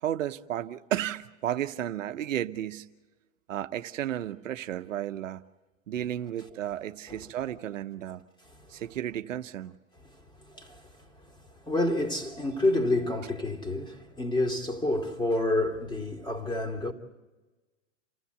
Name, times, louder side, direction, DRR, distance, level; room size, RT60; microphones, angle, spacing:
voice 1, 0.0-2.9 3.5-5.4 5.9-8.2 8.7-9.8, right 11 dB, 85° right, 1.0 m, -33 dB
voice 2, 8.5-8.8 10.5-11.4 11.6-16.9, left 2 dB, 10° left, 2.8 m, -29 dB
29.0 x 14.5 x 8.2 m
hypercardioid pair, 115°, 38 cm